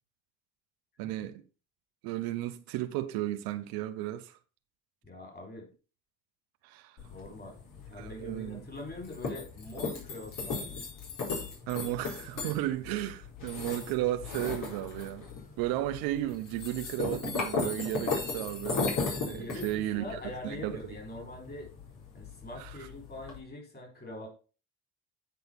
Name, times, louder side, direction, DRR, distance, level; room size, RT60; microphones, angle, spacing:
voice 1, 1.0-1.4 2.0-4.3 6.6-7.0 7.9-8.6 11.7-15.3 15.6-18.8 19.2-20.8 22.6-22.7, right 14 dB, 85° right, 0.9 m, -34 dB
voice 2, 5.0-5.7 7.1-7.6 7.9-10.8 19.3-21.7 22.1-24.3, left 2 dB, 25° left, 4.4 m, -43 dB
sound 1, 7.0-23.4, left 4 dB, 60° left, 4.3 m, -37 dB
9.3 x 4.7 x 5.2 m
supercardioid pair, 75°, 35 cm